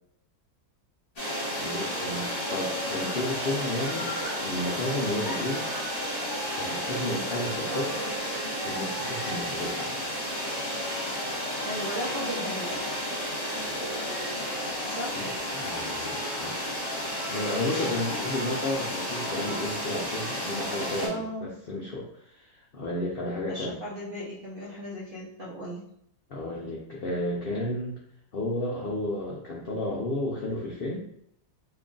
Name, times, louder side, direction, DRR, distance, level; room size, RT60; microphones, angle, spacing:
sound 1, 1.2-21.1, equal, 40° left, 1.2 m, -32 dB
voice 1, 1.6-4.1 4.4-5.7 6.6-8.0 8.6-10.0 15.2-16.5 17.3-23.8 26.3-28.0 28.3-31.0, left 1 dB, 75° left, -4 dB, 0.5 m, -32 dB
Laughter, 3.7-4.4 5.2-8.3 8.7-8.8, left 2 dB, ahead, 0.8 m, -41 dB
voice 2, 11.6-12.9 14.8-15.3 21.0-21.5 23.5-25.8, equal, 50° right, -5 dB, 0.7 m, -36 dB
2.9 x 2.4 x 3.7 m, 0.72 s
omnidirectional pair, 1.7 m